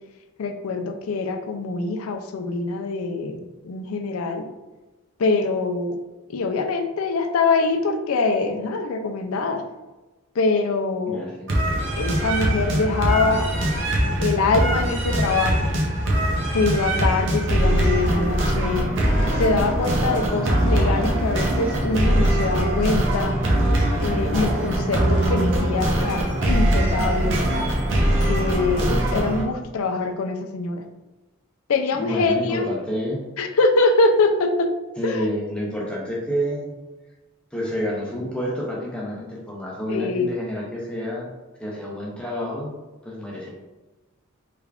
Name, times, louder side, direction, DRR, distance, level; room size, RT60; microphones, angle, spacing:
voice 1, 0.4-4.5 5.2-6.0 6.3-9.6 10.3-11.3 12.0-13.5 14.2-15.7 16.5-18.9 19.4-23.4 24.0-27.4 28.3-30.8 31.7-32.7 33.4-34.7 35.0-35.3 39.9-40.3, left 3 dB, 85° left, 6 dB, 0.4 m, -24 dB
voice 2, 11.1-11.4 31.9-33.2 35.0-36.7 37.5-41.3 41.6-42.7 43.0-43.5, equal, 5° left, -4 dB, 0.6 m, -29 dB
sound 1, 11.5-29.4, right 1 dB, 55° right, 0.7 m, -22 dB
3.4 x 3.3 x 2.4 m, 1.1 s
head